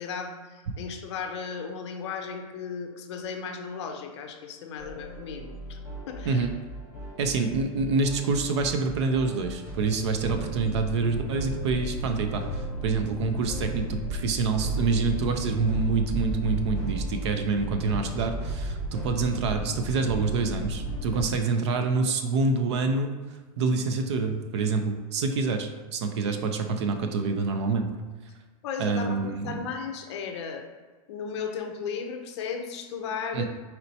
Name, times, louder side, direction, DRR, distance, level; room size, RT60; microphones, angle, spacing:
voice 1, 0.0-5.8 6.1-6.5 28.6-30.7 31.1-33.4, left 6 dB, 50° left, 4 dB, 0.6 m, -35 dB
sound 1, 4.8-21.2, right 1 dB, 10° right, 0.9 m, -34 dB
voice 2, 7.2-23.1 23.6-27.9 28.8-29.6 33.3-33.4, right 4 dB, 45° right, 6 dB, 0.5 m, -27 dB
4.2 x 4.2 x 2.7 m, 1.3 s
supercardioid pair, 170°, 19 cm